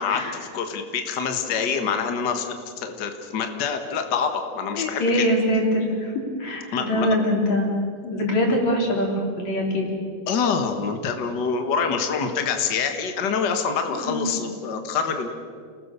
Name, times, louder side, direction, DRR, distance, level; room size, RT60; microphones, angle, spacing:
voice 1, 0.0-5.3 6.7-7.2 10.3-15.3, left 6 dB, 65° left, 5 dB, 1.0 m, -26 dB
voice 2, 4.8-7.7 8.0-9.9 13.9-14.3, equal, 45° left, 0 dB, 5.2 m, -23 dB
29.5 x 20.0 x 6.9 m, 2.1 s
omnidirectional pair, 4.7 m